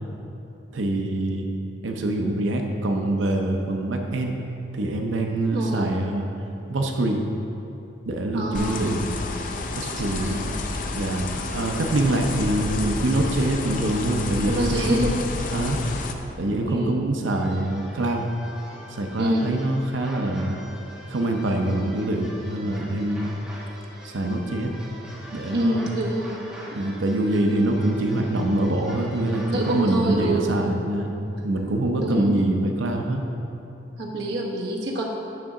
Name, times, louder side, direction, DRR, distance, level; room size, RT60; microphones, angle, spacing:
voice 1, 0.7-1.5 1.8-4.4 4.7-6.3 6.7-7.3 8.1-9.0 9.8-10.4 10.9-15.2 15.5-16.0 16.4-18.3 18.9-20.6 21.1-23.3 24.0-24.7 25.3-25.9 26.7-31.1 31.4-33.2, right 1 dB, 85° right, 3 dB, 0.6 m, -24 dB
voice 2, 5.5-5.9 8.3-8.8 10.0-10.4 14.3-15.1 16.7-17.0 19.2-19.5 25.5-26.4 29.5-30.5 32.0-32.4 34.0-35.0, right 1 dB, 60° right, -2 dB, 1.1 m, -26 dB
sound 1, 8.5-16.1, left 2 dB, 45° left, 0.5 m, -30 dB
sound 2, 17.3-30.0, equal, 5° right, 1.1 m, -43 dB
8.7 x 3.7 x 5.9 m, 3.0 s
head